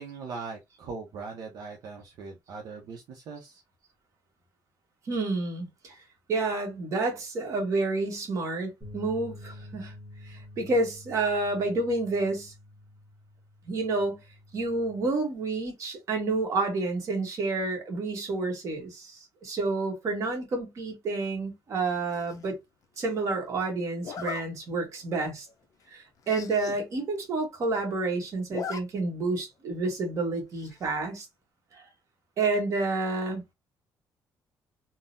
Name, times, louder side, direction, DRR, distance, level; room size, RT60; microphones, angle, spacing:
voice 1, 0.0-3.6, right 4 dB, 65° right, 0.6 m, -40 dB
voice 2, 5.1-5.9 6.3-9.9 10.2-12.5 13.7-14.2 14.5-22.6 23.0-25.5 25.9-31.3 31.7-31.8 32.4-33.4, right 3 dB, 45° right, 1.1 m, -29 dB
sound 1, 8.8-15.1, left 1 dB, 15° right, 1.3 m, -48 dB
Zipper (clothing), 22.1-22.5 24.0-24.4 25.0-25.2 25.5-25.6 25.8-25.9 26.2-26.8 27.2-27.3 27.4-28.0 28.3-28.8 29.1-29.2 30.6-31.0, left 6 dB, 50° left, 0.5 m, -39 dB
3.7 x 2.0 x 2.5 m
cardioid pair, 145°, 7 cm